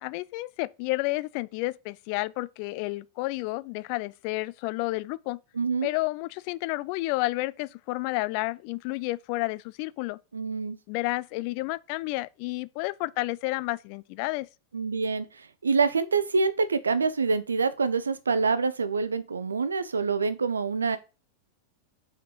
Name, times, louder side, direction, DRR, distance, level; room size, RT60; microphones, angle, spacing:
voice 1, 0.0-5.4 5.8-10.2 10.9-14.5, left 21 dB, 45° left, 0.3 m, -31 dB
voice 2, 5.6-5.9 10.3-10.8 14.7-21.0, right 4 dB, 75° right, 0.6 m, -26 dB
6.1 x 4.4 x 4.6 m
figure-of-eight pair, 90°, 0 cm